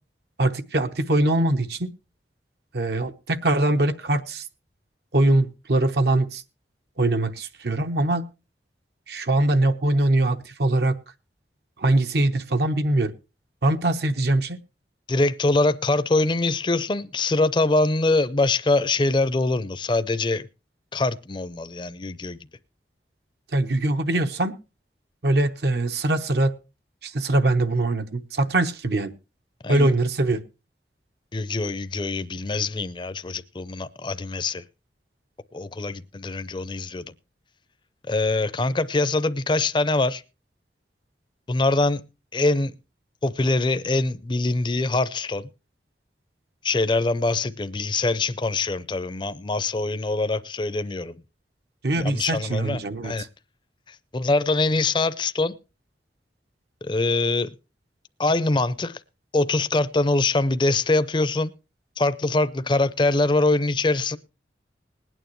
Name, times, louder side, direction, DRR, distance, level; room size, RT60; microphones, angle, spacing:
voice 1, 0.4-1.9 2.7-4.4 5.1-6.4 7.0-8.2 9.1-11.0 11.8-13.1 13.6-14.6 23.5-24.6 25.2-26.5 27.0-29.1 29.7-30.4 51.8-53.3, right 2 dB, 70° right, 0.8 m, -22 dB
voice 2, 15.1-20.4 20.9-22.4 29.6-29.9 31.3-34.6 35.5-37.1 38.1-40.2 41.5-42.0 42.3-42.7 43.2-45.5 46.6-51.1 52.0-53.3 54.1-55.5 56.8-57.5 58.2-59.0 59.3-61.5 62.0-64.2, left 2 dB, 25° left, 0.5 m, -23 dB
20.5 x 9.2 x 3.1 m
head